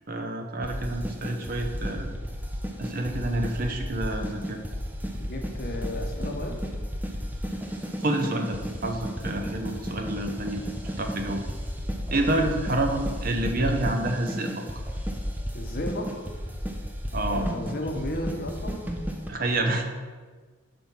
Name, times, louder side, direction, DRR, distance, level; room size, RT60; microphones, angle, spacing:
voice 1, 0.1-2.1 2.8-4.6 8.0-10.6 11.0-11.4 12.1-14.6 17.1-17.5 17.9-18.0 19.3-19.8, right 1 dB, 45° right, 4 dB, 0.7 m, -28 dB
sound 1, 0.6-19.3, equal, 10° right, 0.5 m, -33 dB
voice 2, 5.1-6.6 12.1-12.5 15.5-16.3 17.2-18.8, left 1 dB, 50° left, 3 dB, 0.8 m, -34 dB
5.3 x 4.3 x 5.9 m, 1.5 s
head